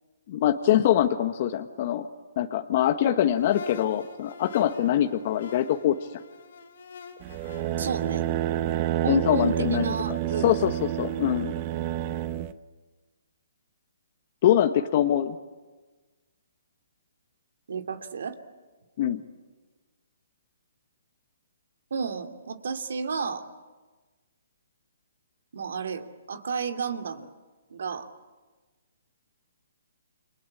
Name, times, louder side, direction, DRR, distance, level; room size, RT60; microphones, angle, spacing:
voice 1, 0.3-2.1 2.4-6.0 9.1-9.9 10.4-11.5 14.4-15.4 19.0-19.2, left 11 dB, 45° left, 7 dB, 1.4 m, -23 dB
sound 1, 3.4-9.2, left 5 dB, 65° left, 4.0 m, -46 dB
sound 2, 7.2-12.5, right 13 dB, 35° right, 1.1 m, -29 dB
voice 2, 7.8-8.2 9.0-10.6 17.7-18.4 21.9-23.4 25.5-27.3 27.7-28.1, right 5 dB, 70° right, 6 dB, 2.7 m, -32 dB
30.0 x 23.5 x 8.6 m, 1.3 s
hypercardioid pair, 145°, 0 cm